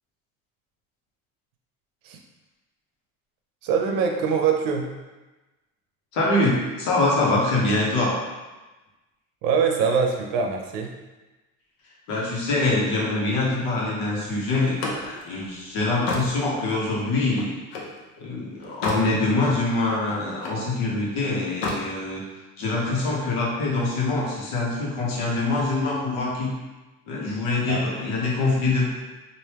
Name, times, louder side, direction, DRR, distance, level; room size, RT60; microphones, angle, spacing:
voice 1, 3.6-4.9 9.4-10.9 18.9-19.2 27.7-27.8, right 6 dB, 80° right, 2 dB, 0.6 m, -23 dB
voice 2, 6.1-8.1 12.1-17.5 18.2-22.2 22.6-26.5 27.1-28.9, left 2 dB, 85° left, -4 dB, 1.1 m, -24 dB
Slam, 14.5-18.0 18.4-19.1 19.5-20.7 21.4-21.9, left 2 dB, 70° left, 0.7 m, -32 dB
3.3 x 2.6 x 3.0 m, 1.1 s
cardioid pair, 170°, 33 cm